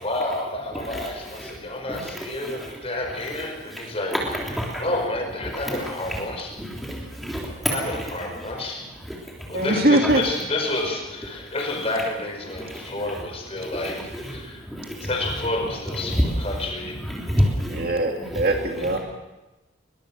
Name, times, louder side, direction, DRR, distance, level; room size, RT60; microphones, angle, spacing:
voice 1, 0.0-4.2 4.8-6.5 7.7-8.8 9.5-14.6 15.1-17.0 18.7-19.0, left 2 dB, 30° left, 2 dB, 5.1 m, -29 dB
voice 2, 0.7-1.1 1.4-1.5 1.9-2.7 3.7-3.8 4.1-4.8 5.4-6.2 6.5-8.0 9.1-9.6 12.6-12.9 13.6-15.1 15.9-16.3 17.1-17.9 18.3-18.4, equal, ahead, -3 dB, 3.3 m, -29 dB
voice 3, 9.5-10.2 17.7-19.0, right 1 dB, 50° right, 2 dB, 2.5 m, -21 dB
22.0 x 22.0 x 6.3 m, 1.0 s
head